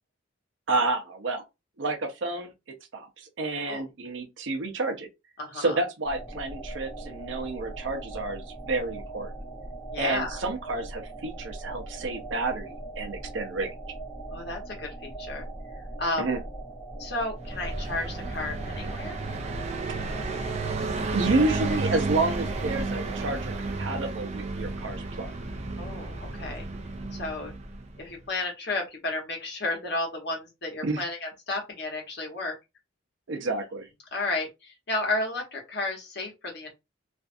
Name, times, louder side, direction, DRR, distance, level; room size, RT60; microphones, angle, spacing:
voice 1, 0.7-1.4 1.8-2.5 2.9-5.1 5.5-9.3 10.0-13.7 16.2-16.4 20.3-20.4 21.1-25.3 30.8-31.0 33.3-33.9, right 3 dB, 70° right, 0.6 m, -30 dB
voice 2, 5.4-5.8 9.9-10.3 14.3-15.4 16.0-16.2 17.0-19.2 25.8-26.7 27.1-27.5 28.0-32.5 34.1-36.7, left 2 dB, 60° left, 1.1 m, -32 dB
sound 1, 6.0-23.6, right 2 dB, 20° left, 0.9 m, -40 dB
Car passing by, 17.4-28.0, right 3 dB, 35° right, 0.4 m, -32 dB
2.5 x 2.3 x 2.5 m
head